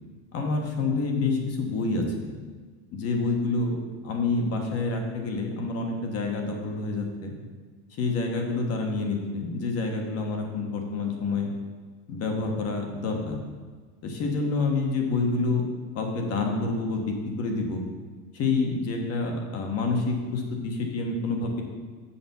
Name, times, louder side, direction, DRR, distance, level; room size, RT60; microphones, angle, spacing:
voice 1, 0.3-2.3 2.9-3.8 4.0-7.3 8.0-11.5 12.1-13.4 14.0-15.6 15.9-17.8 18.3-21.6, left 3 dB, 30° left, 2 dB, 1.2 m, -28 dB
7.0 x 5.1 x 6.9 m, 1.5 s
supercardioid pair, 160°, 46 cm